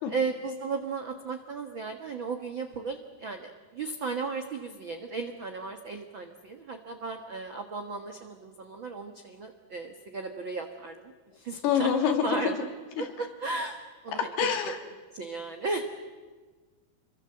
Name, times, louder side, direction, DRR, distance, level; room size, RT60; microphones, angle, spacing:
voice 1, 0.1-11.9 12.2-12.7 13.0-13.8 14.0-14.5 15.1-15.8, right 4 dB, 80° right, 5 dB, 1.1 m, -35 dB
voice 2, 11.6-12.4 13.0-13.1 14.4-14.8, left 7 dB, 80° left, 5 dB, 4.0 m, -26 dB
27.5 x 23.0 x 7.8 m, 1.4 s
omnidirectional pair, 4.6 m